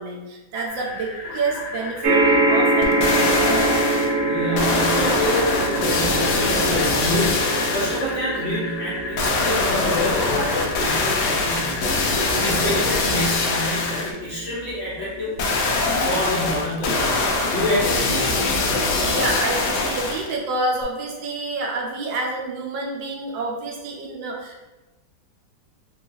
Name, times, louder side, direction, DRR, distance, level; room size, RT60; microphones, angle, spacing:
voice 1, 0.0-3.6 19.1-24.6, right 2 dB, 80° right, -1 dB, 1.4 m, -28 dB
sound 1, 0.7-14.1, left 3 dB, 90° left, 1.4 m, -34 dB
sound 2, 2.0-16.6 17.3-17.4 17.7-17.8, right 2 dB, 65° right, 1.0 m, -25 dB
sound 3, 2.8-4.1 4.5-8.1 9.2-14.1 15.4-20.3 20.8-20.9, left 3 dB, 70° left, 1.1 m, -23 dB
voice 2, 4.2-15.3 16.0-17.2 17.5-18.3, left 1 dB, 45° left, -8 dB, 1.0 m, -28 dB
4.4 x 2.4 x 2.7 m, 1.1 s
omnidirectional pair, 2.1 m